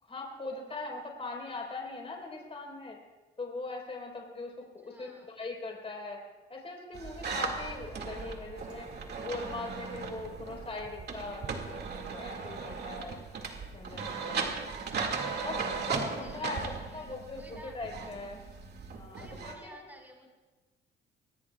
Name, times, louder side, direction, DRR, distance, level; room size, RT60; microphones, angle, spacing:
voice 1, 0.0-3.0 3.4-4.5 4.8-6.2 6.5-8.9 9.2-13.2 13.7-14.5 15.4-18.4 18.9-19.7, left 3 dB, 30° left, 0 dB, 4.6 m, -41 dB
voice 2, 4.8-5.3 16.2-17.8 19.1-20.3, right 1 dB, 10° right, 0 dB, 5.3 m, -54 dB
sound 1, 6.7-13.7, left 1 dB, 30° right, 5.9 m, -55 dB
sound 2, 6.9-19.5, right 4 dB, 55° right, 2.3 m, -37 dB
24.0 x 19.5 x 2.4 m, 1.3 s
cardioid pair, 90°, 20 cm